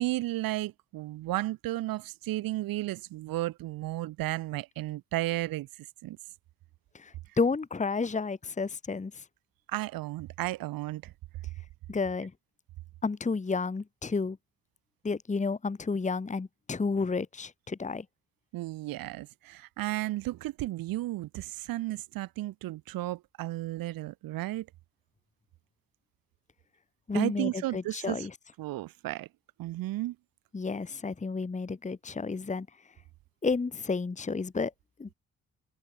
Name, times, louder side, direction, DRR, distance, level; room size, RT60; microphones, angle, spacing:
voice 1, 0.0-5.7 6.0-6.2 9.7-11.1 18.5-24.7 27.1-28.3 28.6-29.3 29.6-30.2, right 16 dB, 80° right, 0.9 m, -33 dB
voice 2, 6.9-9.2 11.9-12.3 13.0-14.4 15.0-18.0 27.1-28.3 30.5-32.7 33.4-34.7 35.0-35.1, left 4 dB, 20° left, 1.0 m, -31 dB
supercardioid pair, 50°, 34 cm